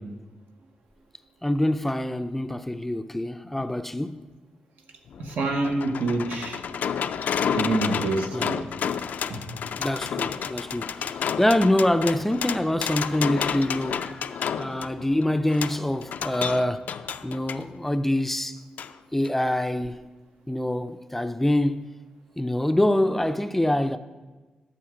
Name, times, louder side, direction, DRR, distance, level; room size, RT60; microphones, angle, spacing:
voice 1, 1.4-4.2 8.3-8.5 9.8-16.9 17.2-18.6 19.1-20.0 20.5-21.9 22.4-24.0, left 1 dB, 10° left, 0.4 m, -25 dB
sound 1, 5.1-17.6 18.8-18.9 19.3-19.4, left 7 dB, 80° left, 0.4 m, -31 dB
voice 2, 5.2-6.6 7.5-8.6 9.3-9.6, right 2 dB, 85° right, 1.2 m, -27 dB
11.5 x 7.1 x 5.0 m
wide cardioid pair, 135°, 3 cm